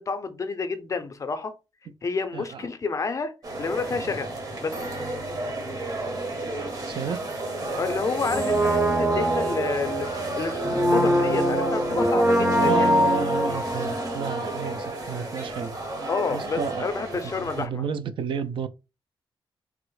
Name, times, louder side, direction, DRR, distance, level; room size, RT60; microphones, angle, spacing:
voice 1, 0.0-1.5 2.0-3.3 3.6-4.3 4.6-4.8 7.8-12.9 16.1-17.8, left 4 dB, 35° left, 0.5 m, -29 dB
voice 2, 2.3-2.6 6.9-7.2 12.6-15.8 16.3-16.9 17.2-18.7, right 6 dB, 65° right, 0.3 m, -31 dB
sound 1, 3.4-17.7, right 2 dB, 40° right, 0.8 m, -33 dB
Brass instrument, 8.3-15.1 15.4-15.5, right 1 dB, 15° right, 0.5 m, -24 dB
3.5 x 2.0 x 3.0 m
wide cardioid pair, 120°, 9 cm